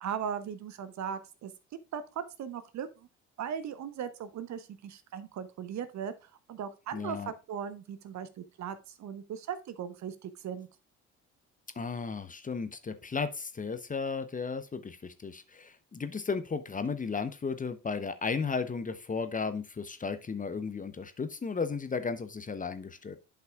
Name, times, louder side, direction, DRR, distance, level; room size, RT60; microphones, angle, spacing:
voice 1, 0.0-1.5 1.9-3.1 3.4-10.7, right 8 dB, 45° right, 0.9 m, -38 dB
voice 2, 6.9-7.3 11.8-23.2, left 5 dB, 20° left, 0.8 m, -34 dB
10.5 x 5.7 x 2.4 m
figure-of-eight pair, 55°, 39 cm